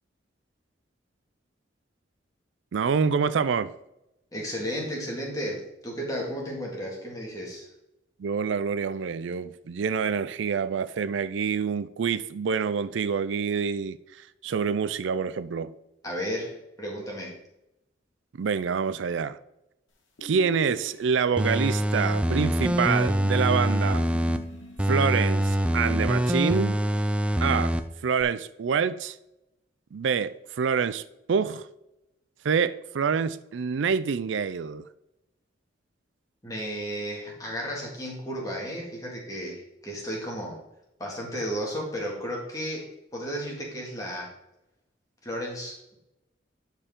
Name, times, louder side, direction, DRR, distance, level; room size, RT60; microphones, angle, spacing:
voice 1, 2.7-3.7 8.2-15.7 18.3-19.4 20.2-24.1 24.9-26.8 27.4-27.8 28.0-29.2 29.9-31.0 31.3-31.7 32.4-34.9, right 6 dB, 80° right, 0.4 m, -26 dB
voice 2, 4.3-7.7 16.0-17.4 36.4-40.6 41.0-42.9 43.1-44.3 45.2-46.0, equal, 20° left, 2.1 m, -33 dB
sound 1, 20.2-21.5 22.7-24.9, equal, 90° left, 1.5 m, -40 dB
sound 2, 21.4-24.4 24.8-27.8 28.2-28.3, equal, 5° right, 0.4 m, -24 dB
11.5 x 4.5 x 3.7 m
head